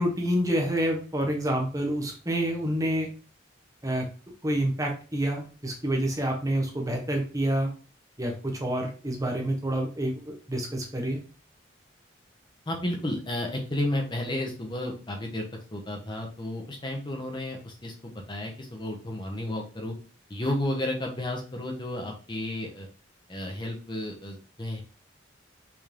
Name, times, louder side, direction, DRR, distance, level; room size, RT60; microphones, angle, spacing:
voice 1, 0.0-3.1 3.8-4.1 4.4-7.7 8.2-11.2, right 1 dB, 15° right, 2 dB, 1.2 m, -28 dB
voice 2, 12.7-15.5 15.7-19.9 20.3-22.9 23.3-24.8, left 1 dB, 25° left, 2 dB, 1.2 m, -32 dB
5.8 x 4.6 x 3.7 m, 0.37 s
head